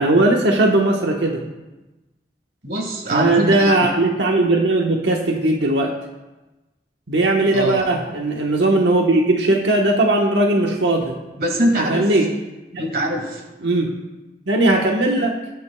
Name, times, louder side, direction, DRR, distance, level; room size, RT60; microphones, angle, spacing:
voice 1, 0.0-1.4 3.1-5.9 7.1-11.2 11.9-12.3 12.7-12.8 13.6-14.0 14.5-15.4, right 2 dB, 85° right, 0 dB, 1.2 m, -18 dB
voice 2, 2.6-3.8 7.5-7.8 11.4-12.1 12.8-13.4, equal, 55° right, 2 dB, 1.9 m, -22 dB
20.0 x 9.4 x 2.3 m, 1.1 s
head